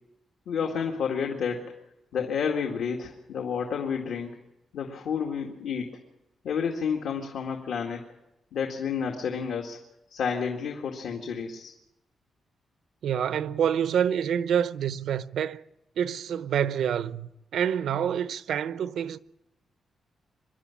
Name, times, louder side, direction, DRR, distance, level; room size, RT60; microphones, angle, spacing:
voice 1, 0.5-1.8 2.1-4.3 4.7-6.0 6.4-8.0 8.5-9.8 10.1-11.7, left 6 dB, 80° left, 2.0 m, -30 dB
voice 2, 13.0-15.6 16.0-19.2, right 8 dB, 80° right, 0.7 m, -27 dB
25.0 x 11.5 x 9.9 m
wide cardioid pair, 145°, 0 cm